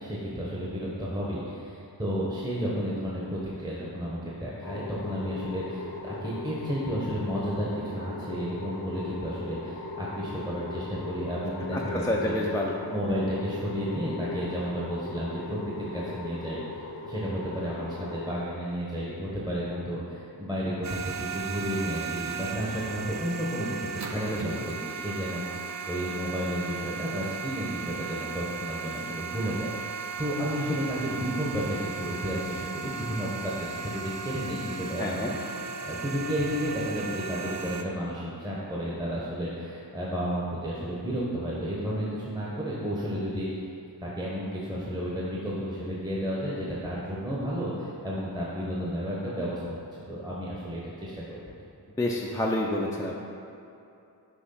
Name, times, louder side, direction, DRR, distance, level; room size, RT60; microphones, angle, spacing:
voice 1, 0.0-12.4 12.9-16.6 17.0-29.7 30.2-43.5 44.0-51.4, equal, 10° right, -7 dB, 1.0 m, -32 dB
sound 1, 4.6-18.4, left 3 dB, 65° left, 0.8 m, -39 dB
voice 2, 11.7-12.8 24.2-24.6 35.0-35.3 52.0-53.2, left 1 dB, 10° left, -3 dB, 0.5 m, -29 dB
sound 2, 20.8-37.8, right 5 dB, 45° right, 0.5 m, -36 dB
6.2 x 3.0 x 5.6 m, 2.8 s
wide cardioid pair, 80°, 41 cm